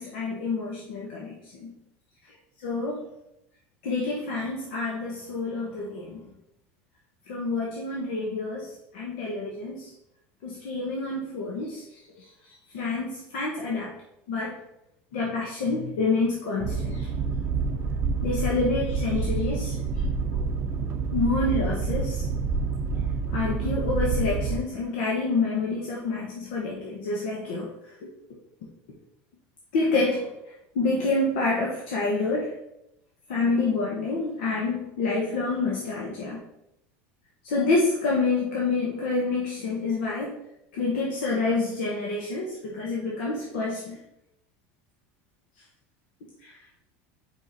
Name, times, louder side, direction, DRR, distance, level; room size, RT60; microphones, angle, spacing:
voice 1, 0.0-1.7 2.6-3.0 3.8-6.3 7.3-8.7 8.9-9.9 10.4-11.8 12.7-13.9 14.3-14.5 15.1-17.1 18.2-19.7 20.3-20.4 21.1-22.2 23.3-27.7 29.7-30.3 30.7-32.5 33.3-36.4 37.4-40.4 40.7-44.0 46.4-46.5, left 3 dB, 80° left, -3 dB, 1.2 m, -28 dB
Boat Water vehicle, 16.6-24.6, right 4 dB, 40° right, 0.5 m, -28 dB
5.0 x 5.0 x 4.1 m, 0.85 s
supercardioid pair, 130°, 6 cm